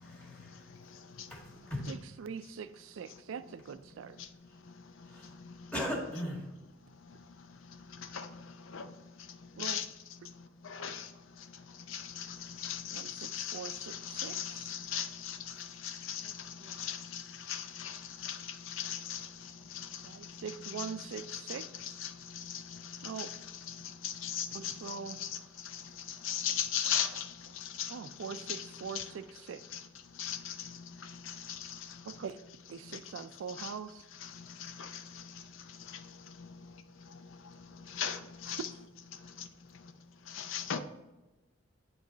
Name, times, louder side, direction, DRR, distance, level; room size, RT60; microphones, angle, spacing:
voice 1, 0.0-0.6 1.3-1.9 5.1-5.3 5.7-6.7 26.2-26.3 28.1-28.2 29.1-29.2, equal, 5° left, 1.6 m, -39 dB
voice 2, 1.9-4.2 9.6-9.8 12.9-14.8 16.2-16.3 16.6-16.8 20.0-21.9 23.0-23.3 24.5-25.2 27.9-29.6 32.1-32.4 32.7-34.0, right 6 dB, 75° right, 0.4 m, -43 dB
voice 3, 10.6-11.1 11.9-16.3 16.7-17.2 17.5-18.4 18.7-19.3 19.7-20.0 20.6-20.9 21.3-22.8 23.2-23.4 23.7-23.8 24.0-25.3 25.7-25.8 26.2-27.3 27.6-27.9 28.3-28.7 28.9-29.0 29.7-29.8 30.2-30.5 31.3-31.7 33.6-33.7 34.2-34.3 34.8-35.0 37.9-38.6 40.4-40.8, left 8 dB, 75° left, 0.5 m, -37 dB
8.9 x 3.1 x 3.9 m
head